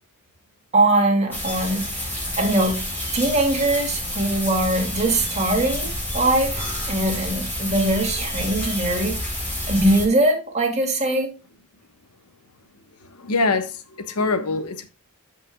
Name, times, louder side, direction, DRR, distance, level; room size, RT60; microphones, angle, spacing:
voice 1, 0.7-1.8 2.4-2.8 3.1-5.9 6.1-9.2 9.7-11.3, right 1 dB, 30° right, 2.5 m, -21 dB
sound 1, 1.3-10.1, left 1 dB, 10° left, 4.5 m, -29 dB
voice 2, 13.0-14.8, left 3 dB, 90° left, 1.3 m, -24 dB
13.0 x 5.5 x 2.3 m
head